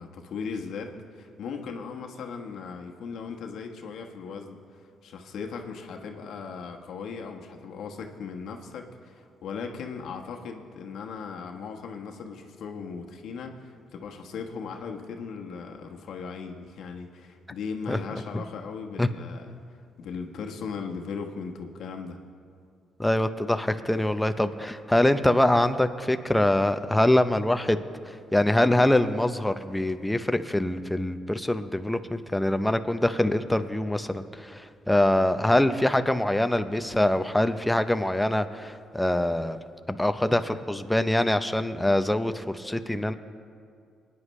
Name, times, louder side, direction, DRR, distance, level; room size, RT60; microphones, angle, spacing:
voice 1, 0.0-4.6 5.0-22.2, left 5 dB, 75° left, 3 dB, 1.1 m, -38 dB
voice 2, 23.0-27.8 28.1-39.6 39.9-43.1, left 1 dB, 5° left, 9 dB, 0.6 m, -24 dB
22.5 x 9.9 x 3.2 m, 2.2 s
cardioid pair, 90°, 0 cm